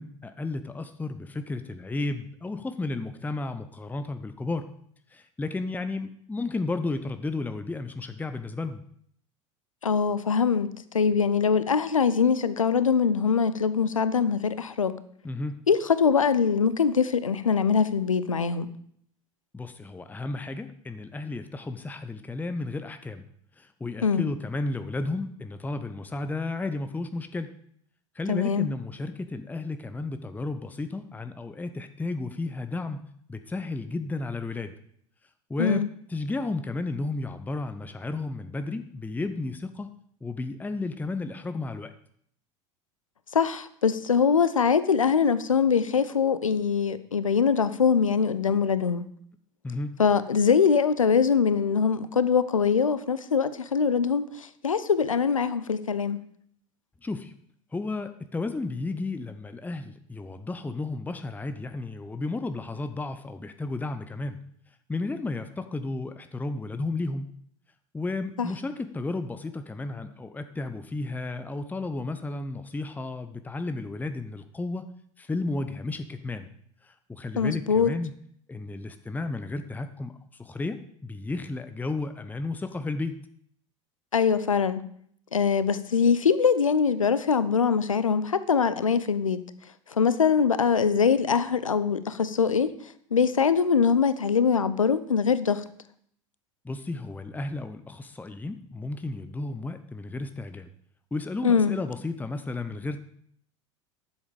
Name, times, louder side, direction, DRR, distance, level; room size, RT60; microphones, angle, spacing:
voice 1, 0.0-4.7 5.1-8.8 15.2-15.7 19.5-23.3 23.6-27.5 28.1-33.0 33.3-34.7 35.5-35.8 36.1-39.9 40.2-41.9 49.6-49.9 57.0-57.3 57.7-64.4 64.9-67.3 67.9-74.9 75.2-76.5 76.8-78.1 78.5-80.1 80.4-83.2 96.6-100.7 101.1-103.0, left 3 dB, 10° left, 9 dB, 0.8 m, -33 dB
voice 2, 9.8-10.7 10.9-14.9 15.7-18.7 24.0-24.3 28.3-28.7 35.6-35.9 43.3-49.0 50.0-56.2 68.4-68.5 77.4-77.9 84.1-84.8 85.3-89.4 89.9-92.7 93.1-95.6 101.4-101.7, left 6 dB, 85° left, 14 dB, 0.6 m, -23 dB
10.5 x 7.4 x 5.1 m, 0.64 s
figure-of-eight pair, 75°, 17 cm